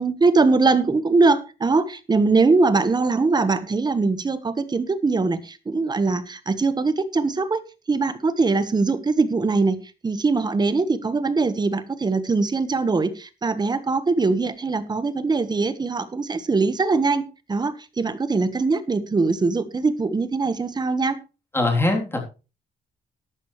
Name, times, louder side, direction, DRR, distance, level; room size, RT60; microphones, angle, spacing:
voice 1, 0.0-7.6 7.9-9.8 10.0-17.2 17.5-21.2, right 3 dB, 25° right, 12 dB, 1.3 m, -22 dB
voice 2, 21.5-22.2, left 2 dB, 15° left, 2 dB, 3.4 m, -21 dB
13.0 x 11.5 x 3.2 m, 0.31 s
cardioid pair, 150°, 18 cm